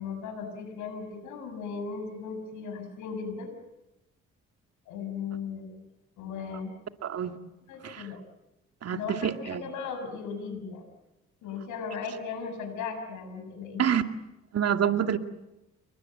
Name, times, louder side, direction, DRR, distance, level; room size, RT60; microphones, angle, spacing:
voice 1, 0.0-3.5 4.9-5.8 6.2-6.7 7.7-8.2 8.9-10.8 11.4-13.8, left 5 dB, 80° left, 7.0 m, -37 dB
voice 2, 7.0-7.4 7.8-8.1 8.8-9.6 13.8-14.0 14.5-15.2, right 8 dB, 55° right, 2.3 m, -27 dB
29.5 x 23.0 x 7.8 m
supercardioid pair, 60°, 30 cm